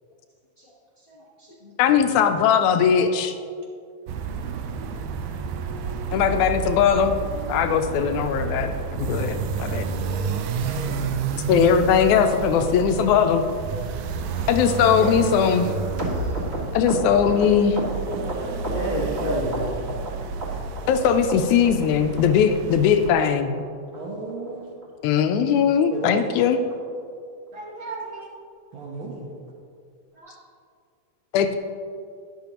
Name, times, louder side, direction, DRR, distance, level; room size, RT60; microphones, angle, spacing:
voice 1, 1.1-2.0 15.0-15.3 18.7-19.6 30.1-30.3, equal, 55° left, -7 dB, 0.6 m, -30 dB
voice 2, 1.8-3.3 6.1-7.2 7.5-8.7 9.0-9.8 11.5-13.4 14.5-15.7 16.7-17.8 20.9-23.6 25.0-26.6 31.3-31.6, left 7 dB, 80° left, 8 dB, 1.9 m, -19 dB
sound 1, 4.1-23.1, right 6 dB, 80° right, 1.5 m, -30 dB
voice 3, 9.7-11.2 14.0-14.8 18.1-19.2 20.2-20.3 20.8-20.9 23.9-24.7 25.9-26.2 27.5-28.3 28.7-29.4, right 2 dB, 55° right, -2 dB, 1.4 m, -36 dB
sound 2, 16.0-19.2 19.5-20.1 20.4-21.0 21.3-21.4 21.6-21.9 22.2-22.3 22.5-22.7 23.0-23.1 23.4-23.6 23.9-24.0 24.3-24.5 24.8-24.9 25.2-25.4 25.7-25.8, equal, 30° right, 1.4 m, -31 dB
11.5 x 10.5 x 2.9 m, 2.3 s
omnidirectional pair, 3.5 m